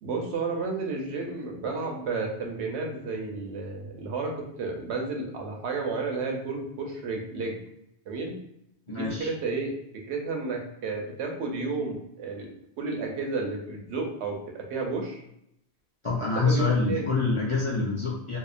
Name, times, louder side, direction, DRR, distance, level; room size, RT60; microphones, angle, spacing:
voice 1, 0.0-7.5 8.1-8.3 8.9-9.7 10.1-12.5 12.8-15.2 16.4-17.1, right 3 dB, 85° right, 1 dB, 0.9 m, -32 dB
voice 2, 8.9-9.3 16.0-18.4, left 3 dB, 55° left, -6 dB, 0.3 m, -26 dB
2.7 x 2.1 x 2.4 m, 0.78 s
omnidirectional pair, 1.1 m